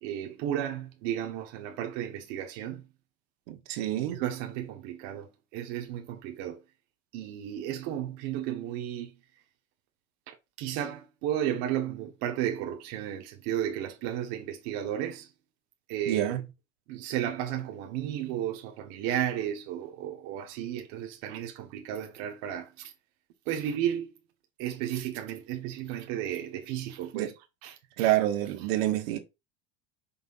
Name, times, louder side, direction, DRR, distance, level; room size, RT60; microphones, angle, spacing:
voice 1, 0.0-2.8 4.1-6.6 7.1-9.1 10.3-15.3 15.9-16.3 16.9-22.9 23.5-24.1 24.6-27.3 27.6-28.1, right 10 dB, 60° right, 1.2 m, -33 dB
voice 2, 3.5-4.2 16.1-16.4 27.1-27.3 28.0-29.2, right 13 dB, 85° right, 1.5 m, -27 dB
5.7 x 3.6 x 5.5 m
cardioid pair, 170°, 30 cm